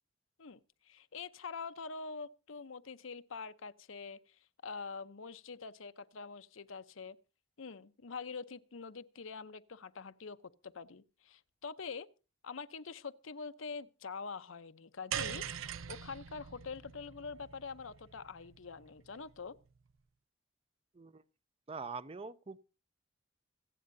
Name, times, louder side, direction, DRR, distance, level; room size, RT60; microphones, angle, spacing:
voice 1, 0.9-4.4 4.6-7.2 7.6-10.4 10.6-12.1 12.4-19.6, left 5 dB, 80° left, 0.7 m, -45 dB
sound 1, 15.1-19.5, right 8 dB, 85° right, 0.6 m, -43 dB
voice 2, 21.7-22.6, right 4 dB, 30° right, 0.5 m, -43 dB
25.5 x 8.5 x 2.7 m
head